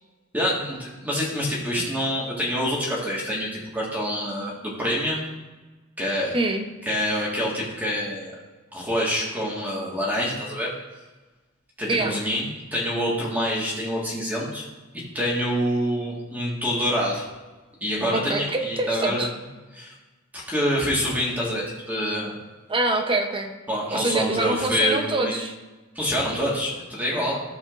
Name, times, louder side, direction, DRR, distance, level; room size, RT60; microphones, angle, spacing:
voice 1, 0.3-5.3 6.0-6.3 6.8-8.3 8.7-10.7 11.8-14.6 15.1-17.3 17.8-19.3 19.7-19.9 20.3-22.3 23.7-25.4 25.9-27.4, equal, 10° right, -5 dB, 1.6 m, -26 dB
voice 2, 6.3-6.6 11.9-12.2 18.1-19.3 22.7-23.5 23.9-25.5, right 2 dB, 25° right, 4 dB, 0.8 m, -25 dB
14.0 x 7.1 x 2.5 m, 1.2 s
head